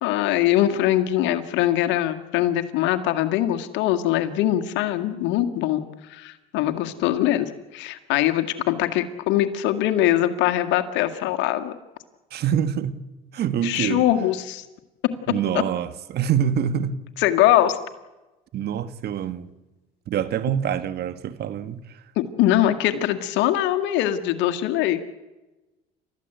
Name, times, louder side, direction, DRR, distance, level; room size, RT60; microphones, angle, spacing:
voice 1, 0.0-5.8 6.1-11.7 13.6-14.6 17.2-17.8 22.2-25.0, left 13 dB, 75° left, 2.0 m, -22 dB
voice 2, 12.3-13.0 13.3-14.0 15.3-17.0 18.5-19.5 20.1-22.0, right 9 dB, 60° right, 1.6 m, -25 dB
30.0 x 14.0 x 8.1 m
supercardioid pair, 75°, 19 cm